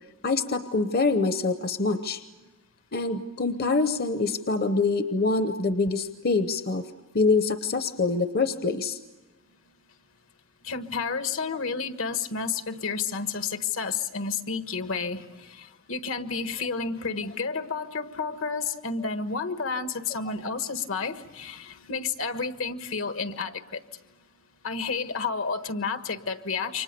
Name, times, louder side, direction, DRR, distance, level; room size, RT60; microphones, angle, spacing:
voice 1, 0.2-2.2 2.9-6.8 7.1-9.0, left 3 dB, 50° left, 9 dB, 0.9 m, -25 dB
voice 2, 10.6-23.8 24.6-26.8, left 5 dB, 75° left, 9 dB, 1.4 m, -31 dB
28.5 x 24.5 x 6.8 m, 1.2 s
head